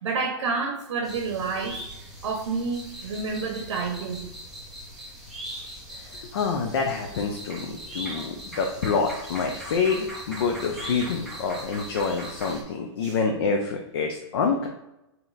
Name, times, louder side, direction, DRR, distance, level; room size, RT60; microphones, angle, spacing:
voice 1, 0.0-1.8 2.2-4.3 5.5-5.8 13.0-13.2, right 4 dB, 85° right, 2 dB, 0.7 m, -29 dB
sound 1, 1.0-12.6, equal, ahead, 0.7 m, -40 dB
voice 2, 6.1-14.7, left 5 dB, 60° left, 2 dB, 0.5 m, -27 dB
3.1 x 2.9 x 3.8 m, 0.91 s
hypercardioid pair, 165°, 15 cm